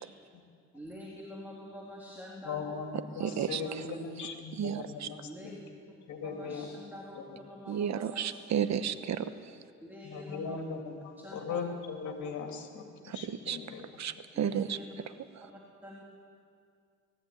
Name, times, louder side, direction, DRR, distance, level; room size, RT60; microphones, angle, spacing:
voice 1, 0.7-2.7 3.2-3.7 5.2-5.6 6.2-8.4 9.8-10.6 11.2-11.6 14.3-14.9 15.4-15.5 15.8-16.0, equal, 5° right, -3 dB, 3.3 m, -46 dB
voice 2, 2.4-2.9 3.1-5.5 6.1-6.7 7.1-7.2 7.7-7.8 10.0-13.9, left 5 dB, 70° left, 3 dB, 2.9 m, -39 dB
voice 3, 3.2-3.6 4.6-5.1 7.7-9.3 13.0-13.6 14.0-15.5, right 8 dB, 65° right, 11 dB, 1.2 m, -33 dB
20.0 x 14.5 x 9.4 m, 2.3 s
cardioid pair, 90°, 30 cm